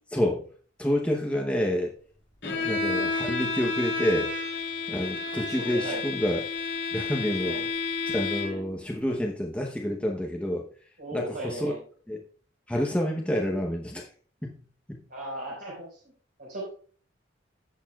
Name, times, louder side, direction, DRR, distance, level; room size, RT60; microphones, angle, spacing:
voice 1, 0.1-0.4 0.8-1.9 2.4-4.5 4.9-6.4 6.9-7.6 8.1-10.7 11.1-11.7 12.1-12.2 12.7-14.1 14.4-14.6 14.9-15.0, equal, 5° left, 0 dB, 0.9 m, -28 dB
Bowed string instrument, 2.4-8.7, left 4 dB, 70° left, 5.2 m, -31 dB
voice 2, 5.5-6.0 7.4-7.6 8.5-8.6 11.0-11.8 15.1-16.0 16.4-16.7, equal, 60° right, -7 dB, 4.9 m, -37 dB
16.5 x 6.7 x 2.4 m, 0.43 s
head